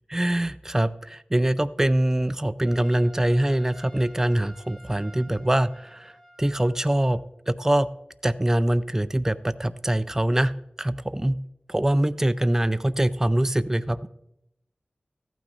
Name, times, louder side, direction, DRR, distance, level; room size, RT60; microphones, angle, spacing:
voice 1, 0.1-6.1 6.4-7.2 7.5-7.9 8.2-10.5 10.8-11.4 11.7-14.1, right 1 dB, 15° right, 14 dB, 0.4 m, -23 dB
Trumpet, 2.6-7.2, equal, 10° left, 2.3 m, -51 dB
14.0 x 9.1 x 3.9 m, 0.80 s
wide cardioid pair, 65°, 3 cm